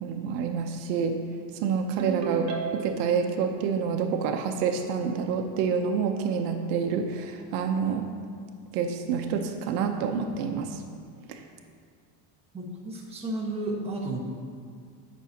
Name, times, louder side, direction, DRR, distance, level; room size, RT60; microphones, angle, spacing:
voice 1, 0.0-1.2 1.5-8.1 8.7-10.8 11.3-11.4, right 6 dB, 75° right, 4 dB, 0.9 m, -28 dB
Ringtone, 2.0-3.2, right 6 dB, 30° right, 1.2 m, -33 dB
voice 2, 12.5-14.2, right 2 dB, 10° right, -4 dB, 1.4 m, -32 dB
18.0 x 6.2 x 2.9 m, 2.2 s
cardioid pair, 165°, 48 cm